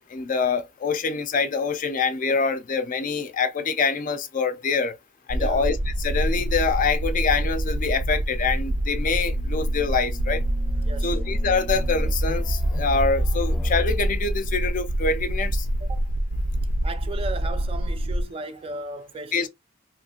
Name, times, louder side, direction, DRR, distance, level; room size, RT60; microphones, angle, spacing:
voice 1, 0.1-4.9 5.3-10.4 11.0-15.7 19.3-19.5, left 5 dB, 40° left, 0.4 m, -25 dB
sound 1, 5.3-18.2, right 1 dB, 90° right, 0.5 m, -26 dB
sound 2, 5.8-14.0, equal, 5° left, 0.6 m, -36 dB
voice 2, 10.8-11.2 15.8-16.0 16.8-19.5, right 2 dB, 30° right, 0.3 m, -35 dB
3.0 x 2.4 x 2.8 m
head